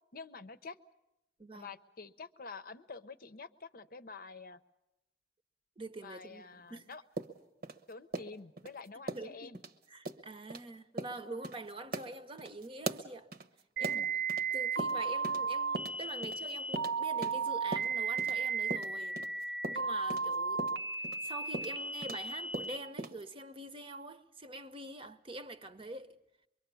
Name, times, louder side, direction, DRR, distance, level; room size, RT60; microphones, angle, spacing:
voice 1, 0.1-0.8 1.5-4.6 6.0-7.0 7.9-9.6 13.8-14.1, left 4 dB, 55° left, 0.8 m, -48 dB
voice 2, 1.4-1.7 5.8-6.9 9.1-9.5 9.9-13.3 13.8-14.1 14.5-19.2 19.7-20.7 21.2-26.2, right 2 dB, 30° right, 0.9 m, -45 dB
sound 1, 7.2-8.7 9.1-9.3 9.5-9.7 10.0-10.2 10.5-10.6 11.0-11.2 11.4-11.6 11.9-14.5 14.8-15.5 15.7-18.4 18.7-22.3 22.5-23.2, right 2 dB, 60° right, 1.1 m, -40 dB
sound 2, 13.8-22.8, right 5 dB, 80° right, 1.0 m, -35 dB
24.5 x 23.0 x 7.0 m
head